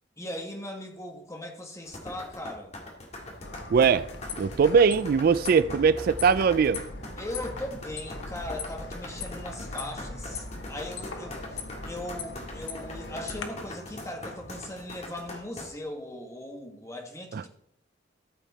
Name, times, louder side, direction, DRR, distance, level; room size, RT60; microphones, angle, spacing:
voice 1, 0.2-2.7 7.2-11.6 11.9-17.5, left 1 dB, 15° left, 1.6 m, -39 dB
sound 1, 1.8-15.7, left 1 dB, 35° left, 2.1 m, -42 dB
sound 2, 3.2-14.7, equal, 70° left, 4.3 m, -47 dB
sound 3, 3.4-13.4, left 4 dB, 90° left, 1.4 m, -40 dB
voice 2, 3.7-4.1 4.4-6.8 17.3-17.5, right 6 dB, 55° right, 0.3 m, -21 dB
13.5 x 7.4 x 4.2 m
head